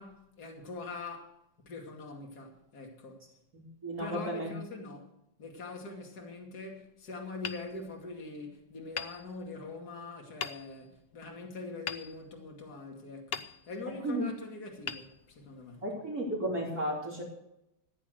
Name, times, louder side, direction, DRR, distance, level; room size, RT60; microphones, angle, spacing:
voice 1, 0.0-1.4 1.6-3.3 4.0-5.1 5.4-15.8, left 3 dB, 50° left, 3.0 m, -43 dB
voice 2, 3.5-4.5 14.0-14.2 15.8-17.2, right 1 dB, 45° right, 3.8 m, -34 dB
Hammer, 7.4-8.4 8.9-9.8 10.4-11.0 11.9-12.8 13.3-14.0 14.8-15.8, left 6 dB, 85° left, 0.5 m, -42 dB
15.0 x 10.0 x 6.5 m
omnidirectional pair, 2.2 m